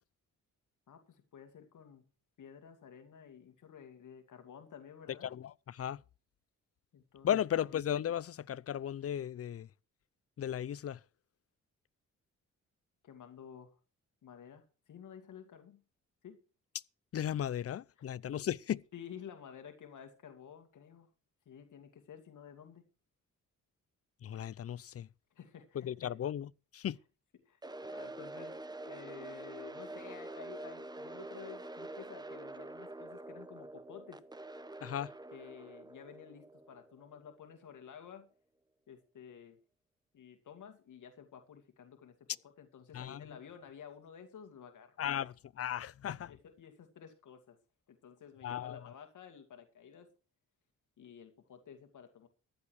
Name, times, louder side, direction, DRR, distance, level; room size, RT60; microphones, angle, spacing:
voice 1, 0.9-2.1 2.4-5.3 6.9-7.3 13.0-13.8 14.2-15.8 16.2-16.4 18.0-18.1 18.9-21.1 21.5-22.8 25.3-26.2 27.5-34.2 35.3-38.3 38.9-39.6 40.1-42.3 42.6-45.3 46.3-47.6 47.9-50.1 51.0-52.3, left 8 dB, 75° left, 2.3 m, -52 dB
voice 2, 5.3-6.0 7.2-9.7 10.4-11.0 17.1-18.8 24.2-25.1 25.8-27.0 34.8-35.1 42.9-43.3 45.0-46.3 48.4-48.7, left 10 dB, 50° left, 0.6 m, -36 dB
sound 1, 27.6-37.7, right 2 dB, 15° right, 0.9 m, -46 dB
15.0 x 11.0 x 4.8 m
cardioid pair, 95°, 31 cm